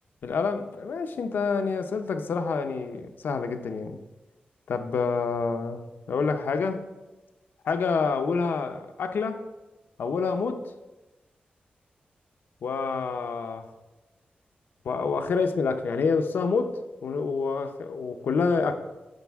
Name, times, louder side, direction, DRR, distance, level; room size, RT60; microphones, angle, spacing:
voice 1, 0.2-4.0 4.7-5.8 6.1-6.9 7.6-9.4 10.0-10.6 12.6-13.7 14.8-18.8, left 4 dB, 85° left, 7 dB, 0.7 m, -27 dB
10.5 x 6.5 x 3.5 m, 1.1 s
wide cardioid pair, 165°, 3 cm